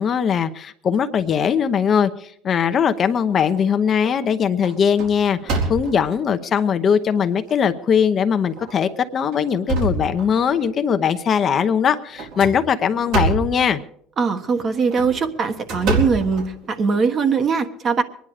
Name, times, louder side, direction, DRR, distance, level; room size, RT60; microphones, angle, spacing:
voice 1, 0.0-13.8, left 7 dB, 40° left, 9 dB, 0.8 m, -20 dB
sound 1, 3.0-3.6 4.0-4.3 4.6-6.2 6.9-7.0 7.5-7.6 8.5-8.7 9.2-10.6 12.2-13.6 14.7-17.0, right 3 dB, 75° right, 4.0 m, -26 dB
voice 2, 14.2-18.0, right 5 dB, 40° right, 7 dB, 1.4 m, -21 dB
23.0 x 10.5 x 4.9 m, 0.66 s
supercardioid pair, 110°, 0 cm